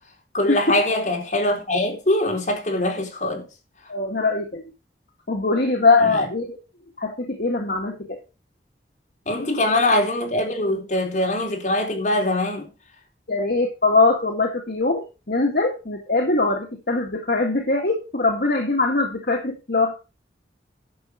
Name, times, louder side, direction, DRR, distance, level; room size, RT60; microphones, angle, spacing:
voice 1, 0.3-3.5 9.3-12.7, left 1 dB, 45° left, 3.9 m, -22 dB
voice 2, 3.9-4.7 5.3-6.6 7.0-8.2 13.3-20.0, left 3 dB, 60° left, 1.9 m, -22 dB
11.5 x 7.1 x 5.1 m
head